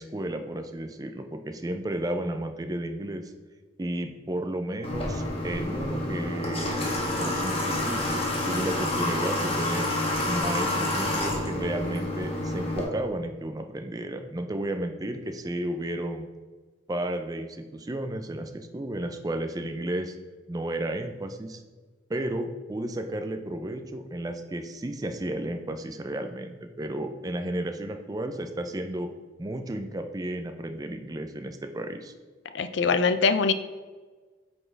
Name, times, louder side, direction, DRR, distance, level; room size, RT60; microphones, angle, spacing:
voice 1, 0.0-3.3 3.8-9.9 10.2-16.3 16.9-20.1 20.5-21.6 22.1-29.1 29.4-32.1, right 1 dB, 20° right, 6 dB, 0.4 m, -33 dB
Water / Water tap faucet, 4.8-12.8, left 1 dB, 30° left, 1.2 m, -28 dB
voice 2, 32.5-33.5, left 4 dB, 65° left, 11 dB, 0.4 m, -23 dB
8.5 x 4.3 x 3.3 m, 1.4 s
head